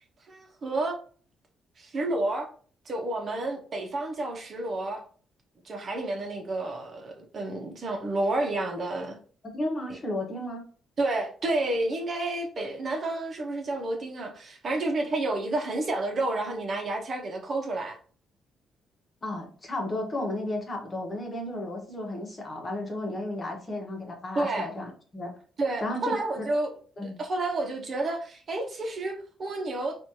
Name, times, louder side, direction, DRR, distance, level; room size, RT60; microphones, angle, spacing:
voice 1, 0.3-1.0 1.8-2.5 2.9-5.0 5.6-9.2 11.0-18.0 24.3-24.7 25.6-26.7 27.0-30.0, right 2 dB, 45° right, 1.0 m, -30 dB
voice 2, 9.5-10.6 19.2-25.3 25.8-26.4 27.0-27.2, left 1 dB, 30° left, 1.2 m, -33 dB
4.2 x 2.6 x 2.9 m
cardioid pair, 90°, 0 cm